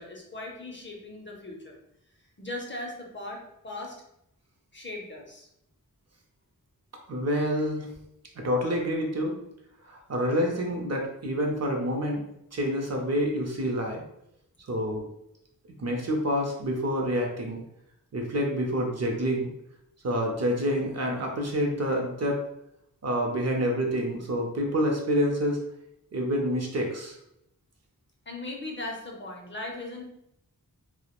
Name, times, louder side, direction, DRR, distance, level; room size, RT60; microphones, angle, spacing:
voice 1, 0.0-1.8 2.4-3.9 4.7-5.5 28.3-30.0, left 2 dB, 35° left, 0 dB, 0.5 m, -38 dB
voice 2, 7.1-7.9 8.4-9.4 9.8-12.2 12.5-14.0 14.7-15.1 15.8-17.6 18.1-19.5 20.0-22.4 23.0-25.6 26.1-27.2, equal, 45° right, 1 dB, 0.5 m, -27 dB
2.1 x 2.0 x 2.9 m, 0.78 s
wide cardioid pair, 95°, 35 cm